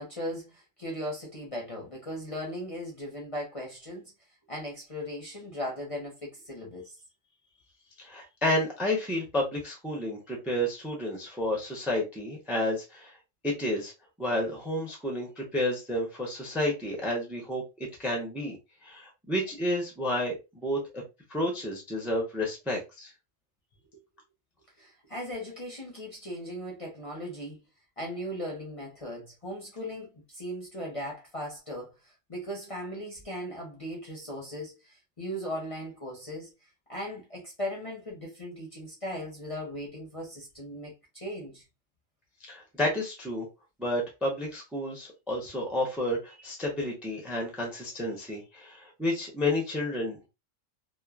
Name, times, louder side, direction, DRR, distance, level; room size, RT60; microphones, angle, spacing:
voice 1, 0.0-4.1 4.5-7.0 24.8-27.6 28.0-31.9 32.3-36.5 36.9-41.6, equal, 30° left, 0.7 m, -38 dB
voice 2, 8.0-13.1 13.4-13.9 14.2-18.6 18.8-21.0 21.3-23.1 42.5-43.5 43.8-50.3, left 1 dB, ahead, 0.6 m, -31 dB
3.0 x 2.2 x 2.3 m
omnidirectional pair, 1.3 m